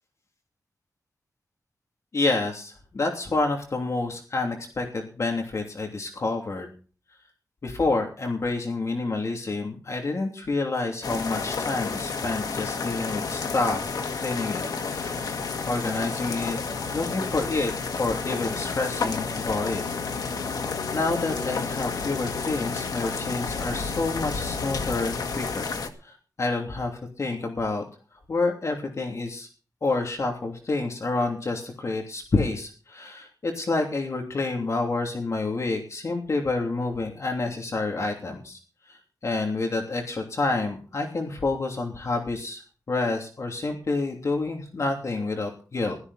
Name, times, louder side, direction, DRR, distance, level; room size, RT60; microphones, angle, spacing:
voice 1, 2.1-6.7 7.6-15.2 15.7-16.6 16.9-17.7 18.0-19.8 20.2-20.4 20.9-25.7 26.0-27.8 28.3-29.5 29.8-38.6 38.9-42.6 42.9-46.0, left 3 dB, 50° left, 2 dB, 3.0 m, -28 dB
sound 1, 11.0-25.9, left 4 dB, 90° left, 1.9 m, -31 dB
16.0 x 13.5 x 4.2 m, 0.39 s
wide cardioid pair, 105°, 6 cm